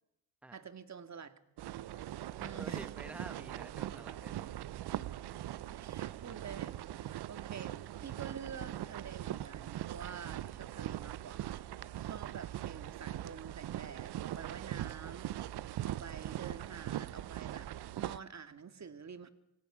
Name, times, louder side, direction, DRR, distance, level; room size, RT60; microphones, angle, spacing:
voice 1, 0.5-1.3 1.7-2.1 2.4-3.3 5.7-11.6 12.0-15.4 15.8-17.7 18.0-19.3, right 6 dB, 35° right, 9 dB, 2.3 m, -48 dB
sound 1, 0.8-1.9 2.5-6.4 7.4-9.8, left 3 dB, 15° left, 5.0 m, -67 dB
sound 2, 1.6-18.2, right 13 dB, 55° right, 0.9 m, -41 dB
voice 2, 2.3-4.6, right 1 dB, 5° right, 9 dB, 1.4 m, -49 dB
26.0 x 18.0 x 6.4 m, 0.84 s
supercardioid pair, 80°, 46 cm